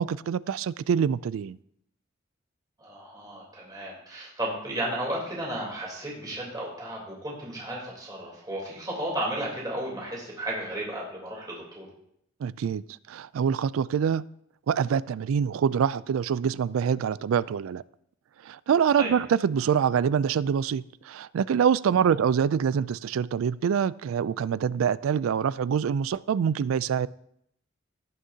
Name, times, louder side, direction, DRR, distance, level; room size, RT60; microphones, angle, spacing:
voice 1, 0.0-1.6 12.4-12.8 13.1-14.2 14.7-17.8 18.4-27.1, right 7 dB, 85° right, 0.3 m, -25 dB
voice 2, 2.8-11.9 19.0-19.1 21.9-22.0, right 1 dB, 20° right, 3.4 m, -34 dB
18.5 x 6.4 x 2.8 m
head